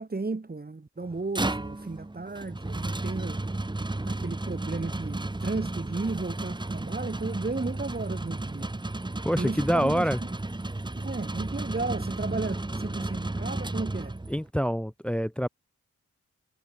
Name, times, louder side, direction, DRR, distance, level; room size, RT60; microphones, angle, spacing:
voice 1, 0.0-3.4 4.1-8.7 9.4-10.1 11.0-14.1, right 3 dB, 30° right, 5.4 m, -34 dB
sound 1, 1.0-14.5, right 2 dB, 15° right, 1.6 m, -33 dB
voice 2, 9.2-10.2 14.3-15.5, equal, 5° left, 0.8 m, -26 dB
wide cardioid pair, 90°, 29 cm